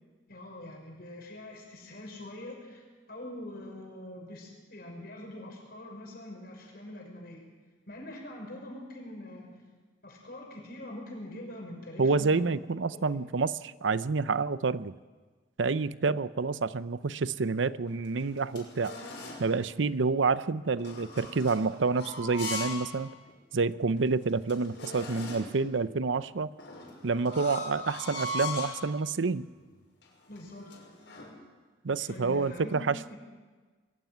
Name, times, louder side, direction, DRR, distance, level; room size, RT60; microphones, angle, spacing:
voice 1, 0.3-2.8 3.1-7.5 7.9-9.6 10.0-12.5 30.3-30.7 32.0-33.2, left 1 dB, 55° left, 1 dB, 6.2 m, -44 dB
voice 2, 12.0-14.9 15.6-19.0 19.4-23.1 23.5-26.5 27.0-29.4 31.8-33.1, right 4 dB, 85° right, 16 dB, 0.7 m, -28 dB
sound 1, 17.9-19.5 20.8-22.9 23.3-23.4 24.0-24.1 24.3-25.6 26.6-28.8 29.5-29.7 30.0-31.3, left 2 dB, 70° left, 6.0 m, -40 dB
22.5 x 15.0 x 9.4 m, 1.4 s
head